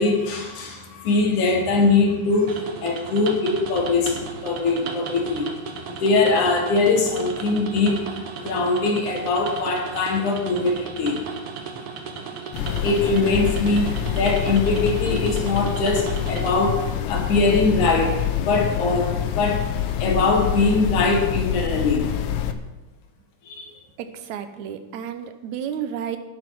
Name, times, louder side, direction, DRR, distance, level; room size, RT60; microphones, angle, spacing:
voice 1, 0.0-19.7 20.0-22.0 23.5-23.7, left 3 dB, 85° left, 2 dB, 3.4 m, -22 dB
sound 1, 2.5-16.5, right 6 dB, 60° right, 1.8 m, -35 dB
sound 2, 12.5-22.5, left 10 dB, 70° left, 1.4 m, -26 dB
voice 2, 24.0-26.2, right 8 dB, 80° right, 9 dB, 2.2 m, -31 dB
11.0 x 10.0 x 6.1 m, 1.1 s
omnidirectional pair, 3.3 m